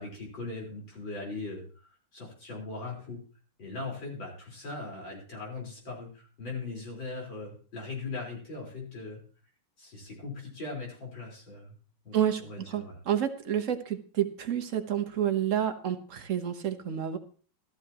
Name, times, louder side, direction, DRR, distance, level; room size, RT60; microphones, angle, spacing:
voice 1, 0.0-3.2 3.6-9.2 9.8-11.7 12.0-12.9, left 3 dB, 60° left, -2 dB, 5.1 m, -40 dB
voice 2, 12.7-17.2, right 9 dB, 50° right, 7 dB, 1.0 m, -29 dB
14.5 x 13.0 x 2.9 m, 0.40 s
omnidirectional pair, 2.3 m